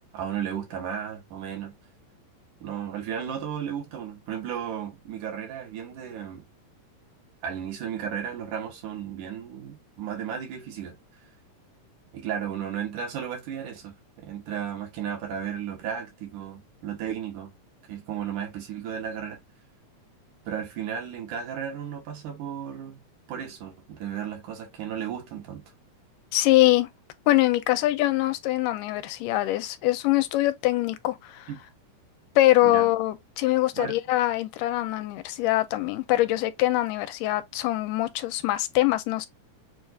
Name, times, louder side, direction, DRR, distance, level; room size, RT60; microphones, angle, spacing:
voice 1, 0.1-1.7 2.6-6.5 7.4-11.0 12.1-17.5 17.9-19.4 20.5-23.0 23.3-25.6 31.5-31.6 32.6-32.8 33.7-34.0, right 8 dB, 75° right, 2.6 m, -34 dB
voice 2, 26.3-26.9 27.3-31.5 32.4-39.3, left 16 dB, 85° left, 2.2 m, -23 dB
6.8 x 2.4 x 2.6 m
omnidirectional pair, 3.8 m